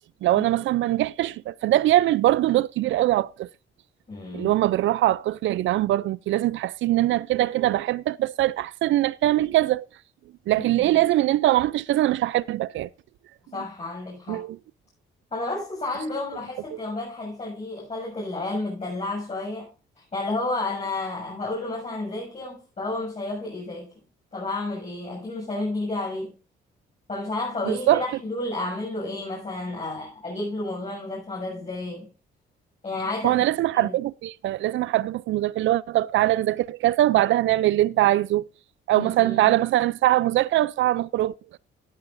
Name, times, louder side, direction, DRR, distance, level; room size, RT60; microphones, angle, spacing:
voice 1, 0.2-3.5 4.3-9.8 10.5-12.9 14.3-14.6 16.7-16.8 27.7-28.0 33.2-38.4 38.9-41.3, right 14 dB, 75° right, 0.5 m, -22 dB
voice 2, 4.1-4.5 10.8-11.0 13.5-14.5 15.3-19.7 20.1-23.9 24.3-26.3 27.1-32.1 32.8-33.4 33.8-34.0 38.9-39.5, left 2 dB, 35° left, 7.1 m, -31 dB
15.0 x 11.0 x 2.6 m
cardioid pair, 90°, 20 cm